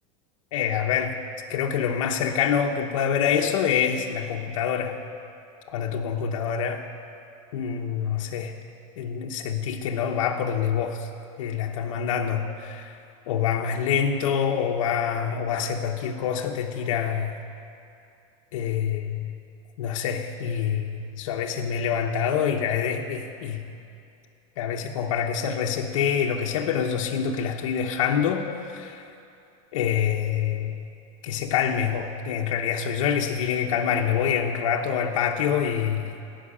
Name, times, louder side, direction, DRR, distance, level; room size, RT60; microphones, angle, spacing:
voice 1, 0.5-1.2 1.5-5.0 5.7-6.8 7.5-8.6 9.0-11.1 11.4-13.0 13.3-17.4 18.5-19.3 19.8-23.7 24.6-29.1 29.7-30.8 31.2-36.2, left 8 dB, 85° left, 1 dB, 1.0 m, -26 dB
17.0 x 5.8 x 8.5 m, 2.6 s
supercardioid pair, 165°, 16 cm